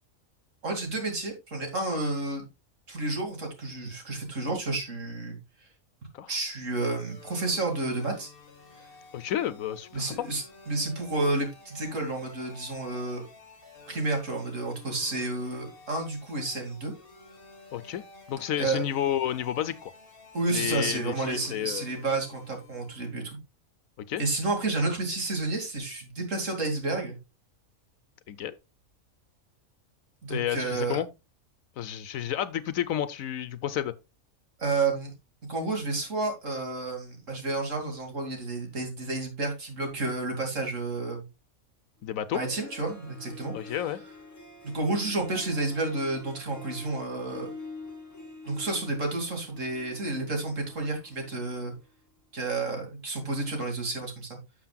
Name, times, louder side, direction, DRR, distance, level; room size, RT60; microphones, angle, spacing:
voice 1, 0.6-2.5 2.9-5.4 6.3-8.3 9.9-13.2 13.9-16.9 18.6-18.8 20.3-23.4 24.2-27.2 30.2-31.0 34.6-35.1 35.5-41.2 42.3-43.8 44.6-47.5 48.5-51.7 52.3-54.4, right 2 dB, 65° right, 2.9 m, -30 dB
sound 1, 6.8-23.2, left 4 dB, 40° left, 2.1 m, -51 dB
voice 2, 9.1-10.2 17.7-18.0 18.3-19.9 20.5-21.8 24.0-24.2 28.3-28.5 30.3-31.1 31.8-33.9 42.0-42.4 43.5-44.0, left 11 dB, 75° left, 1.1 m, -31 dB
Harp, 42.0-42.1 42.3-51.9, left 2 dB, 10° left, 2.1 m, -46 dB
11.5 x 6.8 x 2.3 m
omnidirectional pair, 1.4 m